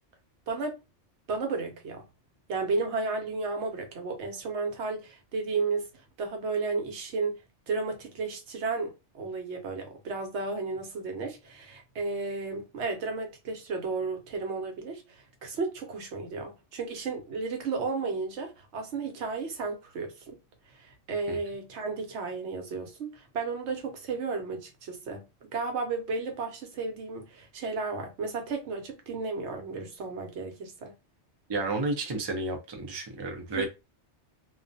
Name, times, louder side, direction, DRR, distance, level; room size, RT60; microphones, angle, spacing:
voice 1, 0.5-0.8 1.3-2.0 2.5-5.9 6.2-7.4 7.7-20.4 20.7-25.2 25.5-30.9 33.5-33.7, right 4 dB, 75° right, 1.0 m, -33 dB
voice 2, 31.5-33.6, right 2 dB, 35° right, 0.4 m, -31 dB
2.3 x 2.2 x 2.5 m
omnidirectional pair, 1.2 m